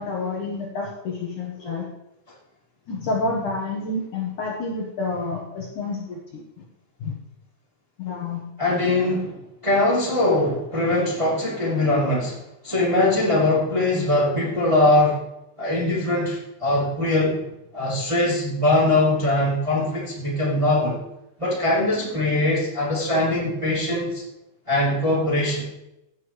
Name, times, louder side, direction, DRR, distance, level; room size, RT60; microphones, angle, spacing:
voice 1, 0.0-1.9 2.9-6.4 7.0-7.1 8.0-8.4 17.9-18.0, left 3 dB, 60° left, -2 dB, 2.4 m, -29 dB
voice 2, 8.6-9.4 9.6-12.4 12.6-15.2 15.6-17.4 17.7-21.0 21.4-24.2 24.7-25.7, left 2 dB, 10° right, -6 dB, 2.2 m, -21 dB
16.0 x 9.1 x 3.2 m, 0.89 s
omnidirectional pair, 4.8 m